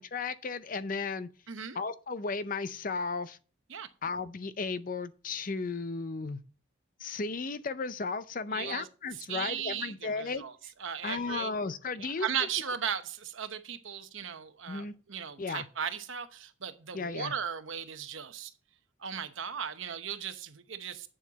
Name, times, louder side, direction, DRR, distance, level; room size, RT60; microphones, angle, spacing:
voice 1, 0.0-1.3 1.7-3.4 4.0-6.4 7.0-10.7 11.0-12.5 14.7-14.9 15.4-15.7 16.9-17.3, left 4 dB, 40° left, 0.5 m, -35 dB
voice 2, 1.5-1.8 3.7-3.9 8.5-8.9 9.3-10.5 10.8-11.5 11.9-18.5 19.0-21.1, right 7 dB, 70° right, 1.0 m, -37 dB
8.8 x 7.3 x 4.1 m
head